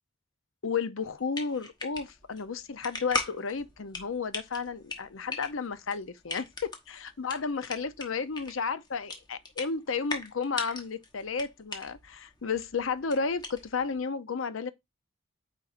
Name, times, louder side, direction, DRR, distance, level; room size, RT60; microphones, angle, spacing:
voice 1, 0.6-14.7, left 5 dB, 85° left, 0.7 m, -33 dB
sound 1, 1.0-14.0, left 3 dB, 20° left, 1.1 m, -40 dB
9.0 x 4.1 x 2.6 m
head